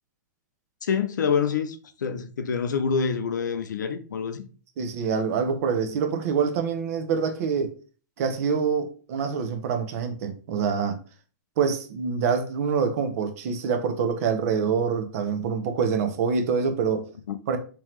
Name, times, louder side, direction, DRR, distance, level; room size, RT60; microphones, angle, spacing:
voice 1, 0.8-4.4 17.3-17.4, left 6 dB, 85° left, 0.6 m, -26 dB
voice 2, 4.8-7.8 8.2-11.0 11.6-17.1 17.5-17.6, right 6 dB, 50° right, 0.8 m, -25 dB
3.7 x 3.0 x 3.1 m
hypercardioid pair, 140°, 10 cm